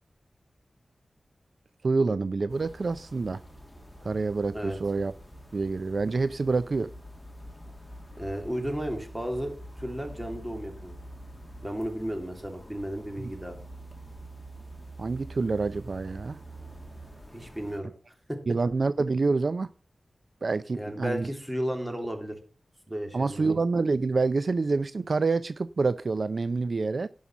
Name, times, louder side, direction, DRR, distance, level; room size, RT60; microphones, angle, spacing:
voice 1, 1.8-3.4 4.0-5.1 5.5-6.9 13.2-13.3 15.0-16.4 18.5-19.7 20.4-21.3 23.1-27.1, right 3 dB, 65° right, 14 dB, 0.4 m, -27 dB
sound 1, 2.5-17.8, right 1 dB, 10° left, 2.2 m, -46 dB
voice 2, 8.2-11.0 11.6-13.6 17.3-17.9 18.3-18.4 20.7-22.4 22.9-23.5, equal, 10° right, 4 dB, 2.9 m, -33 dB
11.0 x 5.5 x 7.0 m, 0.40 s
wide cardioid pair, 65°, 0 cm